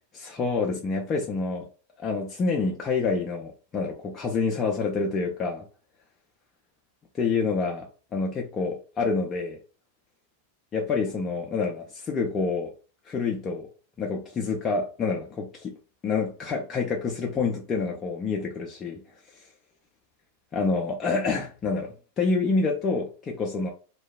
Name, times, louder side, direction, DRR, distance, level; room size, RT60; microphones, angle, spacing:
voice 1, 0.1-1.7 2.0-5.6 7.1-9.6 10.7-12.7 13.1-13.7 14.0-15.8 16.0-19.0 20.5-23.7, left 4 dB, 25° left, 0.4 m, -27 dB
2.6 x 2.2 x 2.3 m
figure-of-eight pair, 90°, 0 cm